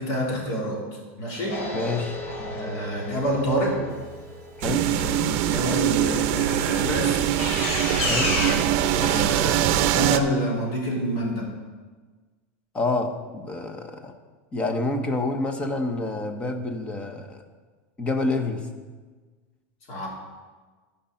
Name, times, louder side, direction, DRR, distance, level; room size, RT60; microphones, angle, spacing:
voice 1, 0.0-1.7 2.4-3.8 4.9-7.4 8.1-11.5 19.9-20.1, equal, 55° left, -3 dB, 3.4 m, -28 dB
sound 1, 1.5-5.2 7.0-8.5, left 2 dB, 90° left, 2.8 m, -31 dB
voice 2, 1.7-2.2 4.6-4.9 8.0-8.4 12.7-14.1 14.5-17.4 18.0-18.7, left 2 dB, 15° left, 6 dB, 0.9 m, -28 dB
sound 2, 4.6-10.2, right 11 dB, 55° right, 0.6 m, -23 dB
13.0 x 5.4 x 5.6 m, 1.4 s
supercardioid pair, 150°, 7 cm